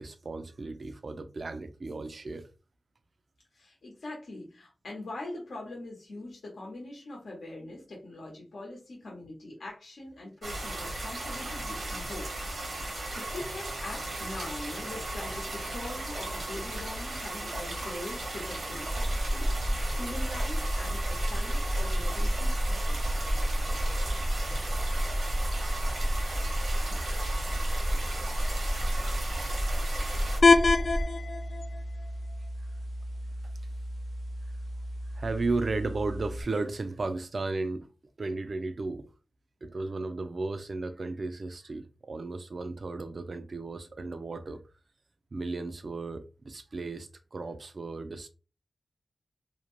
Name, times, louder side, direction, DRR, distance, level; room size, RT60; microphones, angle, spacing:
voice 1, 0.0-2.5 35.1-37.9 38.2-39.1 39.6-44.6 45.3-48.3, right 3 dB, 60° right, 0.4 m, -34 dB
voice 2, 3.5-12.3 13.1-23.0, left 2 dB, 85° left, 0.8 m, -42 dB
sound 1, 10.4-30.4, right 1 dB, 80° right, 1.0 m, -36 dB
sound 2, 18.9-31.1, equal, 10° left, 0.6 m, -30 dB
sound 3, 30.4-36.4, left 3 dB, 65° left, 0.4 m, -28 dB
2.5 x 2.1 x 3.0 m
cardioid pair, 50°, 0 cm